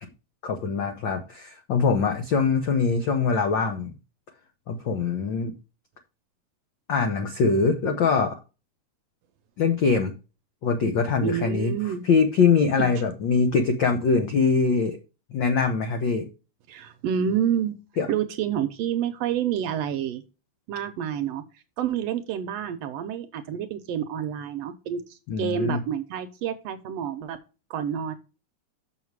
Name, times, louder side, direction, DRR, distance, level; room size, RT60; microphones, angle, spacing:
voice 1, 0.4-3.9 4.7-5.5 6.9-8.4 9.6-10.1 10.6-11.7 12.0-15.0 15.3-16.2 18.0-18.1 25.3-25.8, left 5 dB, 75° left, 5 dB, 1.0 m, -23 dB
voice 2, 11.2-12.0 12.8-12.9 16.7-17.8 18.1-20.2 20.7-21.4 21.8-27.4 27.7-28.2, right 9 dB, 75° right, 9 dB, 1.6 m, -28 dB
6.6 x 6.3 x 4.7 m, 0.31 s
omnidirectional pair, 3.3 m